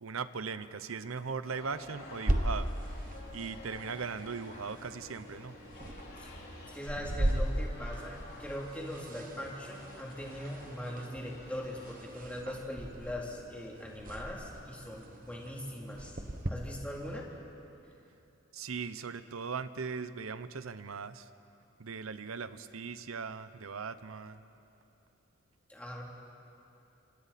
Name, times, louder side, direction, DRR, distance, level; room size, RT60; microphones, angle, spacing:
voice 1, 0.0-5.6 18.5-21.3 21.8-24.4, right 5 dB, 85° right, 13 dB, 0.8 m, -39 dB
sound 1, 1.4-12.0, left 2 dB, 50° left, 3.3 m, -51 dB
sound 2, 2.3-16.5, right 1 dB, 45° right, 1.3 m, -38 dB
voice 2, 6.7-16.2 16.5-17.3 25.7-26.0, equal, 5° left, -3 dB, 3.0 m, -41 dB
27.0 x 26.5 x 4.3 m, 2.8 s
head